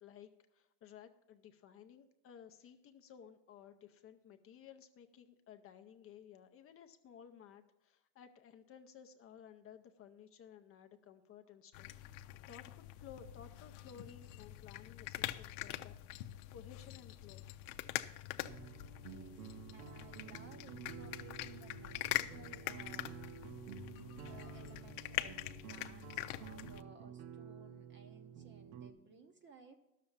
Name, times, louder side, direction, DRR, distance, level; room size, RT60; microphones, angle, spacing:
voice 1, 0.0-16.0 16.5-17.4, left 8 dB, 30° left, 7 dB, 0.5 m, -57 dB
sound 1, 11.7-26.8, left 15 dB, 75° left, 0.7 m, -44 dB
sound 2, 18.4-28.9, right 8 dB, 75° right, 1.2 m, -51 dB
voice 2, 19.0-19.4 19.7-23.3 23.9-29.8, right 3 dB, 25° right, 6 dB, 0.7 m, -59 dB
11.5 x 6.7 x 7.2 m, 0.94 s
cardioid pair, 145°, 46 cm